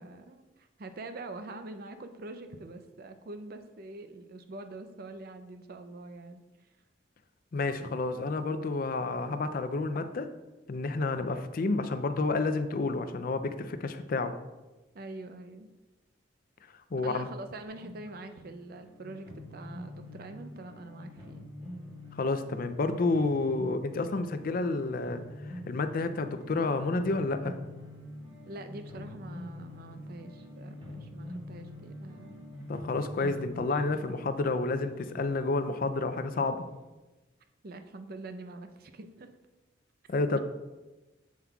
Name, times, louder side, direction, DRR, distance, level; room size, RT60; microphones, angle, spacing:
voice 1, 0.0-6.4 14.9-15.7 17.0-21.4 28.4-32.5 37.6-39.3 40.3-40.4, right 2 dB, 55° right, 8 dB, 0.5 m, -44 dB
voice 2, 7.5-10.3 10.7-14.4 16.9-17.3 22.1-25.2 25.5-27.6 32.7-36.6 40.1-40.4, left 3 dB, 50° left, 10 dB, 0.4 m, -30 dB
sound 1, 17.7-36.8, left 1 dB, 30° right, 2.3 m, -45 dB
7.4 x 7.3 x 2.3 m, 1.1 s
head